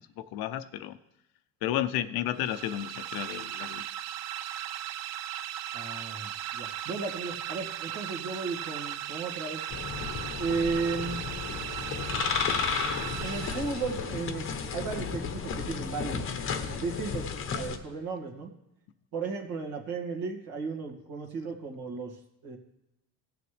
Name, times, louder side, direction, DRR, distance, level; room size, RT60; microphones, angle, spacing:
voice 1, 0.2-1.0 1.6-3.8, left 12 dB, 65° left, 12 dB, 0.7 m, -32 dB
sound 1, 2.3-14.2, right 11 dB, 45° right, 0.4 m, -37 dB
voice 2, 5.7-9.6 10.4-11.4 12.1-16.3 16.7-18.5 19.1-22.6, right 4 dB, 60° right, 3 dB, 2.1 m, -35 dB
sound 2, 9.7-17.8, left 6 dB, 35° left, 0.9 m, -33 dB
16.5 x 6.9 x 3.3 m, 0.89 s
cardioid pair, 135°, 39 cm